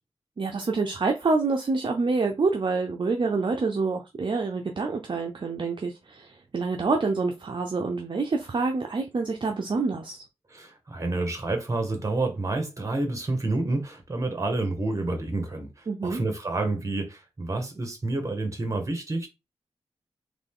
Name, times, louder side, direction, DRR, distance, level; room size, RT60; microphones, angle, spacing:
voice 1, 0.4-10.2 15.9-16.2, right 4 dB, 50° right, 0.6 m, -27 dB
voice 2, 10.5-19.3, right 2 dB, 30° right, 1.5 m, -29 dB
4.0 x 3.3 x 3.7 m
wide cardioid pair, 95°, 11 cm